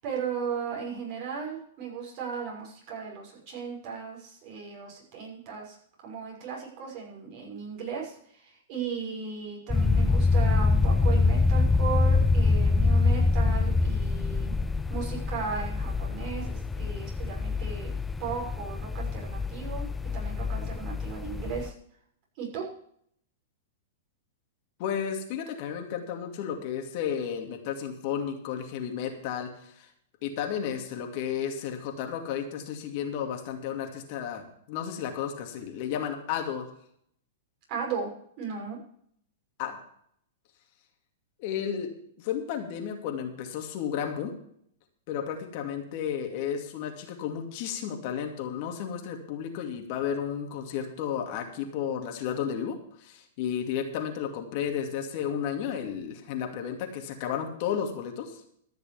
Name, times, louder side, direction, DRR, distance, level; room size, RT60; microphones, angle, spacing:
voice 1, 0.0-5.8 6.0-14.5 14.9-17.9 18.2-19.8 20.1-21.7 22.4-22.7 37.7-38.1 38.4-38.8, right 6 dB, 45° right, -1 dB, 6.2 m, -36 dB
sound 1, 9.7-21.7, left 3 dB, 10° left, 0.5 m, -25 dB
voice 2, 24.8-29.9 30.2-36.7 39.6-39.8 41.4-41.9 42.2-44.3 45.1-58.4, left 8 dB, 50° left, 3 dB, 2.5 m, -33 dB
14.0 x 6.7 x 7.2 m, 0.65 s
hypercardioid pair, 135°, 0 cm